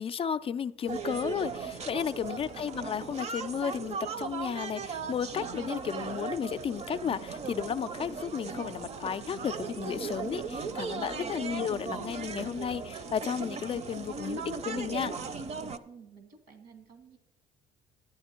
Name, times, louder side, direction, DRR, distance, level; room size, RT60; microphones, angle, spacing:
voice 1, 0.0-15.2, left 7 dB, 35° left, 0.3 m, -33 dB
sound 1, 0.9-15.8, right 5 dB, 40° right, 0.7 m, -37 dB
voice 2, 2.3-2.7 11.2-11.4 15.9-17.2, right 6 dB, 85° right, 2.0 m, -53 dB
11.0 x 9.0 x 4.4 m
cardioid pair, 110°, 17 cm